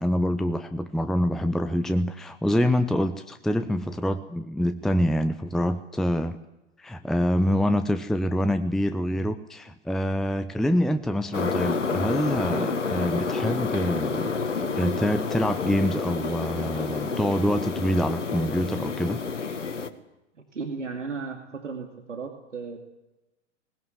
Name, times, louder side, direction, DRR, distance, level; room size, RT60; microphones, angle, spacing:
voice 1, 0.0-6.4 6.8-14.3 14.6-19.2, equal, ahead, 10 dB, 0.7 m, -26 dB
sound 1, 11.3-19.9, left 4 dB, 80° left, 1.8 m, -29 dB
voice 2, 20.3-22.9, right 4 dB, 85° right, 4 dB, 2.7 m, -35 dB
20.5 x 20.0 x 7.8 m, 0.97 s
figure-of-eight pair, 105°, 36 cm